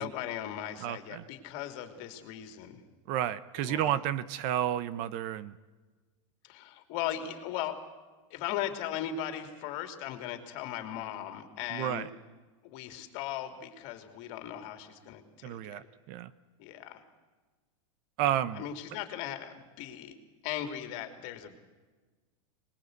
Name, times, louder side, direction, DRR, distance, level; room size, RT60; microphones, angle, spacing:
voice 1, 0.0-2.8 3.6-4.0 6.4-7.8 8.3-12.1 12.6-15.9 16.6-17.0 18.5-20.1 20.4-21.6, left 11 dB, 45° left, 7 dB, 3.2 m, -38 dB
voice 2, 0.8-1.2 3.1-5.5 11.7-12.1 15.4-16.3 18.2-18.6, right 11 dB, 45° right, 16 dB, 0.9 m, -31 dB
25.0 x 20.5 x 8.1 m, 1.3 s
supercardioid pair, 150°, 17 cm